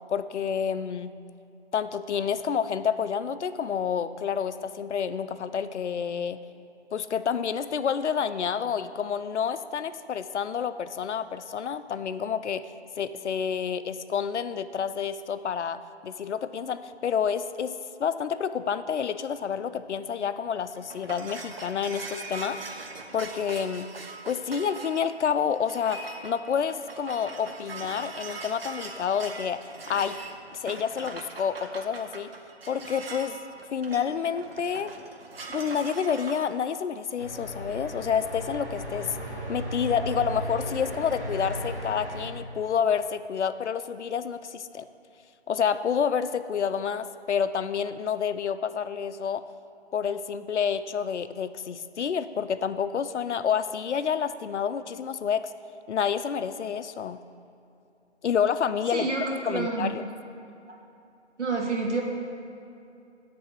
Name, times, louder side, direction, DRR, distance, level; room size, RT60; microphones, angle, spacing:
voice 1, 0.1-1.2 1.7-6.4 6.9-12.7 13.0-17.7 18.0-22.6 23.1-23.9 24.3-29.6 29.9-30.2 30.5-32.3 32.7-33.4 33.7-34.9 35.5-39.2 39.5-44.9 45.5-49.4 49.9-55.5 55.9-57.2 58.2-59.1 59.5-60.1, left 7 dB, 75° left, 12 dB, 0.5 m, -29 dB
sound 1, 20.5-36.4, right 3 dB, 55° right, 0.8 m, -41 dB
sound 2, 37.2-42.3, right 1 dB, 15° right, 0.7 m, -35 dB
voice 2, 58.9-59.9 60.7-60.8 61.4-62.0, right 3 dB, 80° right, -1 dB, 1.7 m, -28 dB
9.3 x 3.4 x 6.2 m, 2.7 s
figure-of-eight pair, 160°, 35 cm